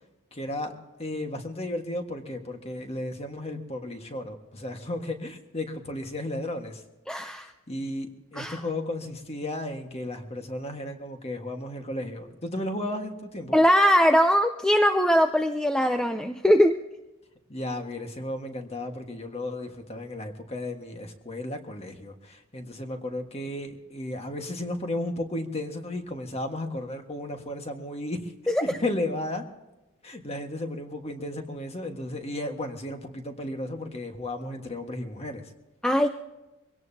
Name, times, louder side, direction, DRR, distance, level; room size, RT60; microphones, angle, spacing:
voice 1, 0.3-0.7 1.0-6.8 7.4-13.6 17.5-28.3 28.6-29.4 30.0-35.5, left 1 dB, 30° left, 5 dB, 1.5 m, -34 dB
voice 2, 7.1-7.5 8.4-8.6 13.5-16.8 28.5-28.6 35.8-36.1, equal, 5° left, 6 dB, 0.5 m, -21 dB
23.0 x 17.0 x 2.8 m, 1.0 s
head